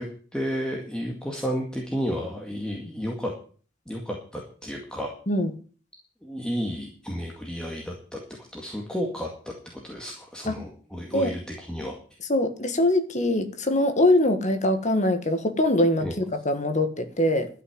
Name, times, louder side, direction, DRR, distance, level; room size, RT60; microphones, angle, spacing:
voice 1, 0.0-3.3 3.9-5.1 6.2-8.2 8.5-12.0 16.0-16.1, equal, 5° left, -1 dB, 2.0 m, -32 dB
voice 2, 12.3-17.5, left 1 dB, 35° left, 9 dB, 1.6 m, -23 dB
12.5 x 6.2 x 9.5 m, 0.42 s
head